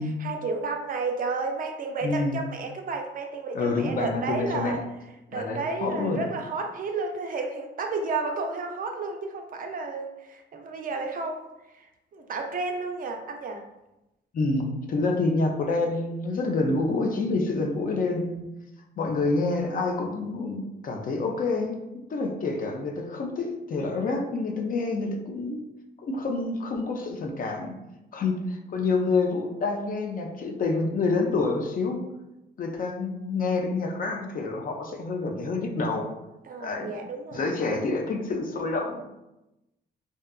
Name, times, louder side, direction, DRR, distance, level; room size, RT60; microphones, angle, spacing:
voice 1, 0.0-4.8 5.3-11.4 11.7-11.9 12.1-13.6 36.5-37.5, right 3 dB, 45° right, 3 dB, 0.4 m, -32 dB
voice 2, 2.0-2.4 3.5-4.8 5.3-6.2 14.3-18.4 19.0-25.6 26.0-27.8 28.1-32.0 32.6-36.1 36.6-36.9 37.3-39.0, left 3 dB, 45° left, 2 dB, 0.5 m, -27 dB
2.7 x 2.2 x 2.2 m, 0.93 s
cardioid pair, 90°, 20 cm